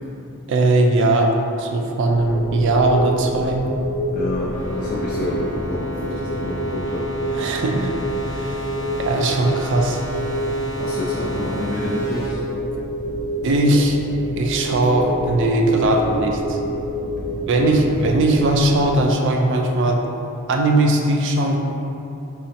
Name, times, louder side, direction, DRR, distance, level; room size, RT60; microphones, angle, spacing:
voice 1, 0.5-1.3 1.6-3.6 7.3-7.9 8.3-8.7 9.0-10.0 13.4-14.0 14.3-16.6 17.5-20.0 20.5-21.6, right 2 dB, 60° right, 2 dB, 0.4 m, -19 dB
sound 1, 2.2-19.0, right 1 dB, 85° left, 0.7 m, -28 dB
voice 2, 4.1-6.1 6.4-7.1 7.5-7.6 10.8-12.4 17.6-17.8, left 1 dB, 40° left, -6 dB, 0.4 m, -28 dB
sound 2, 4.5-12.3, left 2 dB, 15° left, 0.8 m, -33 dB
4.0 x 2.0 x 4.1 m, 2.8 s
head